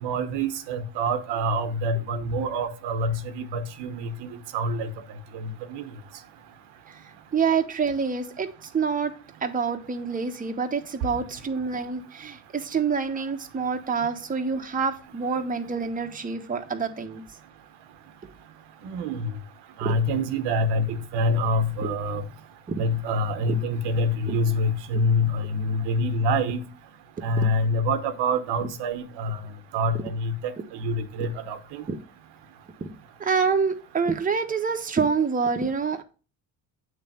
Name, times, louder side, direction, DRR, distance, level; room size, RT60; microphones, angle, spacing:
voice 1, 0.0-4.9 5.3-5.9 18.8-19.3 19.8-22.2 22.8-26.6 27.2-29.4 29.7-31.9, equal, 85° right, 1.0 m, -26 dB
voice 2, 7.3-9.1 9.4-17.2 19.8-19.9 21.8-21.9 22.7-22.8 23.5-23.6 24.3-24.4 27.2-27.5 31.9-32.0 32.8-32.9 33.2-36.0, right 5 dB, 20° right, 0.9 m, -27 dB
8.2 x 3.3 x 5.5 m
supercardioid pair, 85°, 40 cm